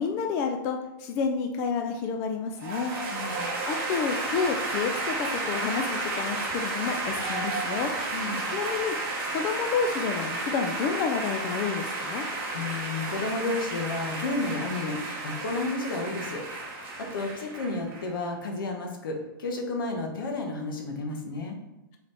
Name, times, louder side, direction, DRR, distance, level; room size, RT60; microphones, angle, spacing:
voice 1, 0.0-2.9 3.7-7.9 8.5-8.9 9.3-12.2, left 6 dB, 20° left, 4 dB, 0.3 m, -29 dB
sound 1, 2.6-18.1, right 2 dB, 20° right, 1.4 m, -32 dB
voice 2, 2.8-3.5 8.1-8.5 12.5-16.4 17.0-21.6, left 2 dB, 75° left, 3 dB, 1.4 m, -32 dB
7.2 x 3.9 x 3.4 m, 0.97 s
hypercardioid pair, 165°, 12 cm